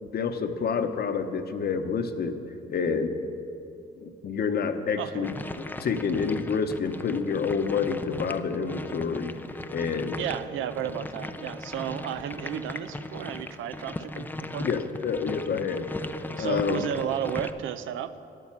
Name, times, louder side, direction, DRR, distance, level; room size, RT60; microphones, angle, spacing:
voice 1, 0.0-2.4 2.7-3.1 4.0-9.3 9.7-10.2 14.6-15.9 16.4-16.9, left 5 dB, 50° left, 8 dB, 0.9 m, -28 dB
voice 2, 5.0-5.3 10.2-14.3 14.5-14.7 16.4-18.1, right 10 dB, 80° right, 12 dB, 0.5 m, -33 dB
sound 1, 5.2-17.5, left 2 dB, 10° left, 0.5 m, -38 dB
9.5 x 9.2 x 7.2 m, 2.7 s
cardioid pair, 90°, 20 cm